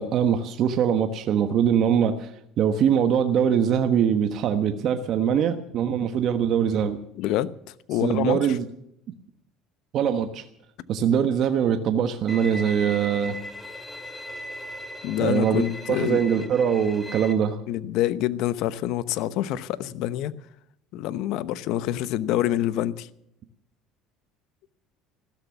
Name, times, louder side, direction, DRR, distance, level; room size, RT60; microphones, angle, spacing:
voice 1, 0.0-2.3 2.6-7.0 8.0-8.6 9.9-10.4 10.9-13.4 15.2-17.6, right 8 dB, 55° right, 1.3 m, -22 dB
voice 2, 7.1-7.5 7.9-8.4 15.0-16.2 17.7-20.3 20.9-23.1, left 13 dB, 70° left, 0.9 m, -26 dB
Bowed string instrument, 12.3-17.3, equal, 5° left, 2.5 m, -38 dB
15.5 x 13.0 x 7.1 m
supercardioid pair, 95°, 0 cm